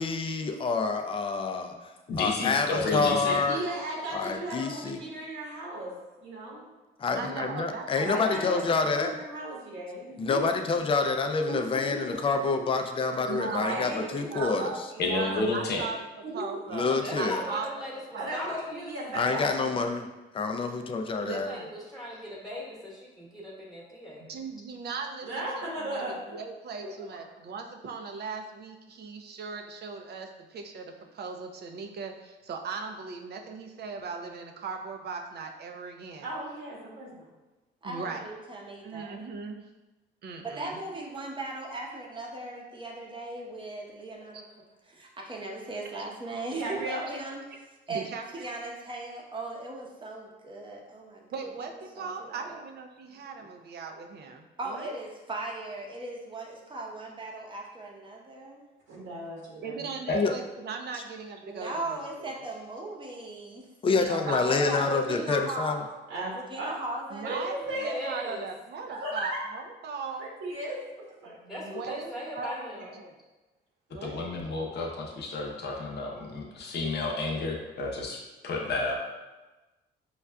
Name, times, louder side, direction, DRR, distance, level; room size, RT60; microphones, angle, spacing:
voice 1, 0.0-3.6 4.1-5.0 7.0-9.2 10.2-14.7 16.7-17.4 19.1-20.1 20.3-21.5 60.1-60.3 63.8-65.8, left 4 dB, 25° left, 5 dB, 0.4 m, -27 dB
voice 2, 2.1-3.4 15.0-15.8 60.1-60.2 74.0-79.0, left 3 dB, 60° left, 0 dB, 0.7 m, -31 dB
voice 3, 3.2-5.9 6.2-6.7 8.0-10.5 11.5-11.6 11.8-12.7 13.5-15.7 16.3-16.4 18.2-19.7 25.2-26.1 36.2-37.3 46.6-47.0 58.9-59.9 66.1-66.7 67.2-67.9 68.9-69.4 70.2-70.8 71.2-71.4 72.8-72.9, right 1 dB, 85° right, -4 dB, 1.1 m, -36 dB
voice 4, 7.2-9.1 13.3-14.7 15.2-16.1 16.3-17.7 18.1-18.6 21.3-21.7 24.3-25.5 25.8-36.3 37.8-38.3 38.8-39.6 40.2-40.8 44.3-44.4 47.5-47.6 47.9-48.6 51.3-55.0 59.6-62.4 64.0-64.7 67.1-70.3 71.3-73.2 73.9-74.3, right 5 dB, 55° right, 4 dB, 0.5 m, -39 dB
voice 5, 17.0-17.9 18.3-18.9 21.3-24.3 67.8-68.5 71.5-72.9, equal, ahead, -5 dB, 1.1 m, -38 dB
voice 6, 37.8-39.2 40.4-44.4 44.9-47.4 47.9-51.4 52.0-52.6 53.4-53.5 54.6-58.6 61.4-63.7 64.4-66.0 66.3-67.4, right 2 dB, 25° right, -1 dB, 0.8 m, -38 dB
5.3 x 2.3 x 2.2 m, 1.1 s
cardioid pair, 90°, 20 cm